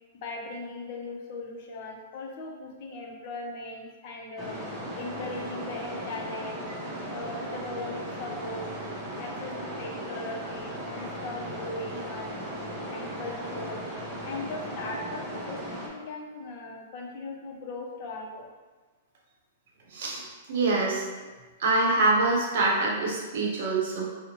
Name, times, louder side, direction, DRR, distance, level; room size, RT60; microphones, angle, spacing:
voice 1, 0.1-4.6 4.9-6.6 7.1-8.7 9.2-12.5 12.9-13.9 14.2-18.5, left 3 dB, 50° left, 0 dB, 0.5 m, -39 dB
sound 1, 4.4-15.9, right 1 dB, 25° right, 0.6 m, -37 dB
voice 2, 19.9-20.2 20.5-21.0 21.6-24.0, right 2 dB, 65° right, -2 dB, 0.7 m, -25 dB
2.9 x 2.0 x 2.8 m, 1.3 s
hypercardioid pair, 135°, 0 cm